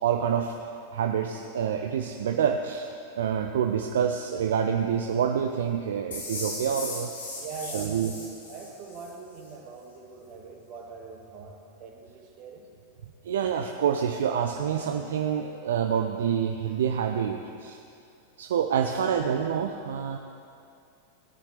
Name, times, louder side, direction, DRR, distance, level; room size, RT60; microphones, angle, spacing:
voice 1, 0.0-0.6 0.9-2.9 3.2-7.1 7.7-8.1 13.2-17.8 18.4-20.2, right 8 dB, 60° right, 4 dB, 0.5 m, -27 dB
sound 1, 6.1-9.1, left 3 dB, 65° left, 2.5 m, -37 dB
voice 2, 7.4-8.1 8.5-12.7 18.8-19.2, right 4 dB, 40° right, 1 dB, 1.7 m, -42 dB
17.0 x 9.9 x 3.2 m, 2.5 s
figure-of-eight pair, 90°, 0 cm